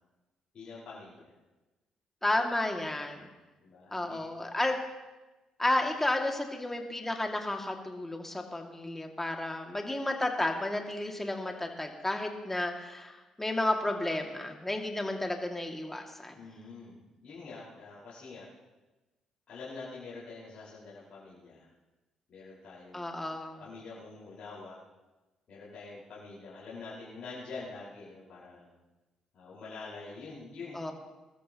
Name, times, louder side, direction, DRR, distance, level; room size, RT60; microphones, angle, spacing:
voice 1, 0.5-1.3 3.1-3.3 3.6-4.4 16.3-18.5 19.5-21.7 22.3-23.2 23.6-24.8 25.5-28.7 29.3-30.9, left 3 dB, 55° left, -9 dB, 5.0 m, -46 dB
voice 2, 2.2-3.3 3.9-4.8 5.6-16.3 22.9-23.6 30.7-30.9, left 1 dB, 15° left, 3 dB, 2.3 m, -32 dB
21.5 x 13.5 x 3.0 m, 1.1 s
hypercardioid pair, 50°, 2 cm